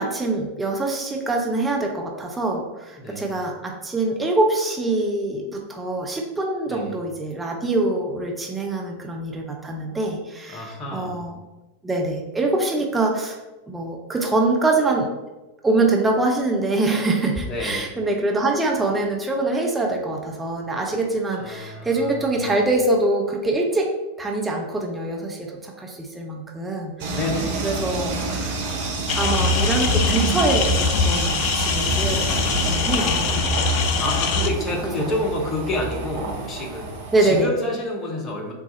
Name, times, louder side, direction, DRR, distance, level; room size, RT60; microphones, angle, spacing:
voice 1, 0.0-11.3 11.8-13.4 13.7-15.1 15.6-23.9 24.2-27.2 27.6-28.6 29.2-33.9 35.0-35.1 35.8-35.9 37.1-37.5, right 2 dB, 10° right, 0 dB, 0.5 m, -24 dB
voice 2, 3.0-3.3 6.7-6.9 10.5-11.2 17.5-17.9 21.4-22.5 27.1-27.7 34.0-36.9 37.2-38.5, left 1 dB, 25° left, -1 dB, 0.9 m, -29 dB
sound 1, 27.0-37.4, right 3 dB, 45° right, 0.8 m, -28 dB
sound 2, 29.1-34.5, left 4 dB, 45° left, 0.4 m, -22 dB
3.9 x 2.4 x 3.9 m, 1.1 s
figure-of-eight pair, 90°, 0 cm